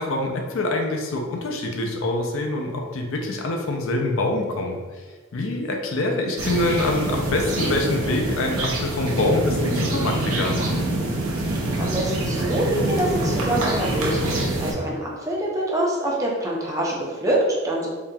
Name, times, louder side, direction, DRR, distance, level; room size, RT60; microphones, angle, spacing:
voice 1, 0.0-4.8 5.3-10.7, left 2 dB, 65° left, 2 dB, 0.5 m, -25 dB
sound 1, 6.4-14.7, right 1 dB, 75° right, 0.7 m, -25 dB
voice 2, 11.8-17.9, right 1 dB, 15° right, -3 dB, 0.5 m, -25 dB
3.6 x 2.3 x 2.7 m, 1.4 s
head